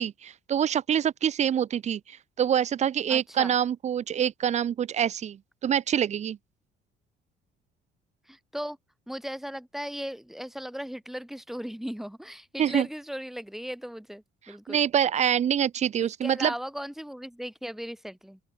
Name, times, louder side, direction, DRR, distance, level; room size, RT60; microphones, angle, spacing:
voice 1, 0.0-6.4 12.6-12.9 14.7-16.5, right 9 dB, 40° right, 0.9 m, -26 dB
voice 2, 3.1-3.6 8.3-8.8 9.1-14.8 16.0-18.4, equal, ahead, 2.0 m, -37 dB
open air
cardioid pair, 110°, 17 cm